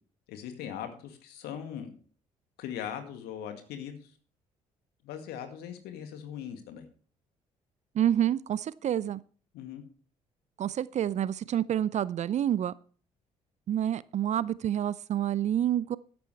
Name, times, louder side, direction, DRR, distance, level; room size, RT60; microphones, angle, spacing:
voice 1, 0.3-1.9 2.6-4.1 5.0-6.9 9.5-9.8, left 9 dB, 65° left, 7 dB, 2.0 m, -40 dB
voice 2, 8.0-9.2 10.6-12.7 13.7-16.0, right 10 dB, 40° right, 21 dB, 0.5 m, -28 dB
12.5 x 10.5 x 3.3 m, 0.42 s
figure-of-eight pair, 45°, 18 cm